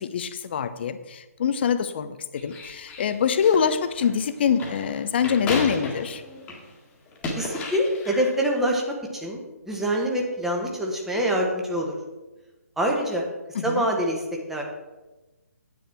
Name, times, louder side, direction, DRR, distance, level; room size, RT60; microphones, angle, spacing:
voice 1, 0.0-6.2 13.5-13.9, left 7 dB, 40° left, 12 dB, 0.7 m, -25 dB
sound 1, 2.4-6.7 7.1-8.4, left 3 dB, 15° left, 1.7 m, -33 dB
voice 2, 7.3-9.4 9.7-11.9 12.8-13.2 13.6-14.2 14.5-14.6, right 1 dB, 5° right, 0 dB, 1.3 m, -25 dB
9.4 x 9.0 x 4.5 m, 1.1 s
figure-of-eight pair, 140°, 9 cm